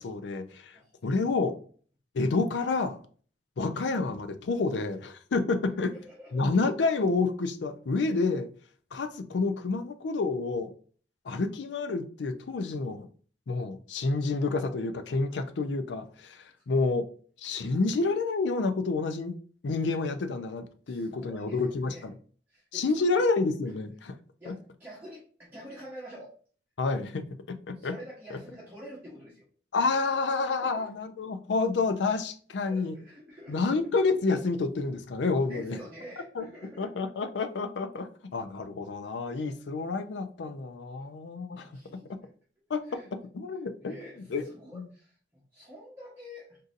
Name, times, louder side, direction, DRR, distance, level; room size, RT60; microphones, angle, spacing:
voice 1, 0.0-1.6 2.1-3.0 3.6-5.9 6.3-8.5 8.9-10.7 11.3-13.1 13.5-17.1 17.4-19.4 19.6-22.1 22.7-24.1 24.5-24.6 26.8-27.9 29.7-33.0 33.5-35.8 36.4-36.5 36.8-41.7 42.7-44.9, left 3 dB, 75° left, 9 dB, 0.4 m, -29 dB
voice 2, 5.9-6.4 20.9-22.1 22.5-23.1 24.0-24.1 24.4-26.3 27.8-29.4 30.6-30.9 32.7-33.7 35.5-36.9 41.0-41.1 41.5-42.1 42.9-43.1 43.8-44.2 44.5-46.6, equal, 10° right, -6 dB, 0.9 m, -47 dB
3.8 x 2.6 x 2.5 m, 0.43 s
head